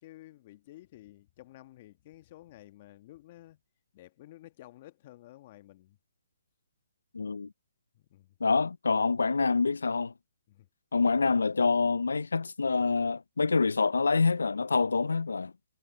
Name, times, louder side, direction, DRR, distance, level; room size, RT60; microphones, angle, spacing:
voice 1, 0.0-3.6 3.9-6.0 7.9-8.4 10.5-10.7, left 15 dB, 45° left, 1.4 m, -52 dB
voice 2, 7.1-7.5 8.4-10.1 10.9-15.5, left 4 dB, 85° left, 0.4 m, -26 dB
hypercardioid pair, 140°, 0 cm